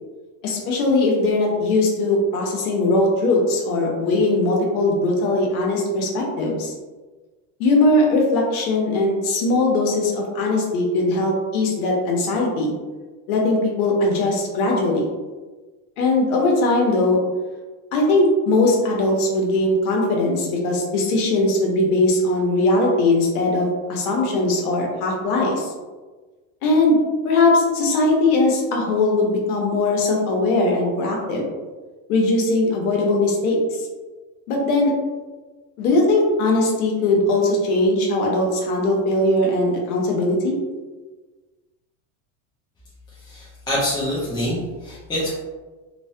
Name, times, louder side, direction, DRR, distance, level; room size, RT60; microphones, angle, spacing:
voice 1, 0.4-6.7 7.6-12.7 13.3-15.1 16.0-17.2 17.9-25.7 26.6-27.0 27.2-31.4 32.1-33.9 34.5-34.9 35.8-40.5, left 2 dB, 90° left, 0 dB, 0.9 m, -20 dB
voice 2, 43.2-45.3, left 1 dB, 10° left, -9 dB, 0.4 m, -25 dB
3.1 x 2.1 x 2.6 m, 1.3 s
supercardioid pair, 135°, 42 cm